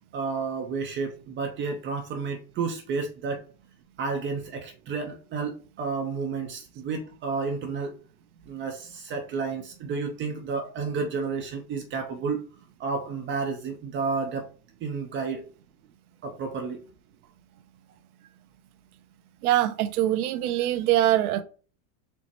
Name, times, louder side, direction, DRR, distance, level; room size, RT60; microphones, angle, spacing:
voice 1, 0.1-3.4 4.0-7.9 8.5-12.4 12.8-14.5 14.8-15.4 16.2-16.8, right 4 dB, 25° right, 0.5 m, -31 dB
voice 2, 19.4-21.4, right 13 dB, 90° right, 0.6 m, -23 dB
4.3 x 2.0 x 4.3 m
supercardioid pair, 130°, 44 cm